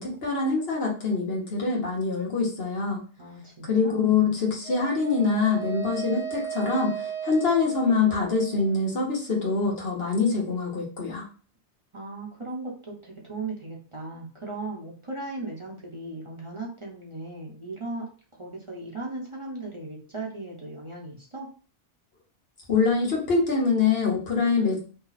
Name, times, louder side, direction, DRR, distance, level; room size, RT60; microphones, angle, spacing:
voice 1, 0.0-3.0 3.7-6.9 7.2-11.2 22.7-24.8, left 4 dB, 65° left, -2 dB, 1.5 m, -24 dB
voice 2, 3.2-4.2 11.9-18.1 18.3-21.5, right 2 dB, 30° right, -3 dB, 1.0 m, -37 dB
Wind instrument woodwind instrument, 4.6-8.8, right 9 dB, 5° right, 0.8 m, -35 dB
5.3 x 2.2 x 4.0 m, 0.39 s
omnidirectional pair, 1.1 m